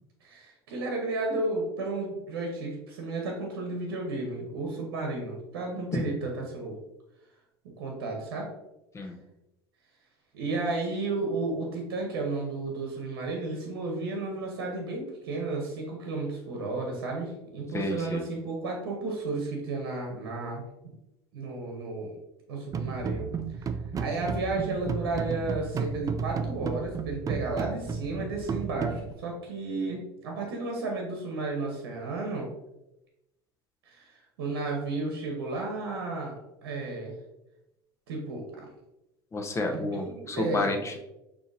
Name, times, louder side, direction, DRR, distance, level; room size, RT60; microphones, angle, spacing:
voice 1, 0.2-6.8 7.8-8.5 10.3-20.6 21.3-22.2 22.5-23.3 23.6-23.7 24.0-32.5 33.8-36.4 36.6-37.1 38.1-38.7 39.7-40.7, right 3 dB, 85° right, 1 dB, 0.9 m, -33 dB
voice 2, 17.7-18.2 39.3-41.0, left 2 dB, 25° left, 3 dB, 0.8 m, -30 dB
sound 1, 22.7-29.1, right 6 dB, 30° right, 0.4 m, -33 dB
6.1 x 2.8 x 2.7 m, 0.92 s
supercardioid pair, 90°, 12 cm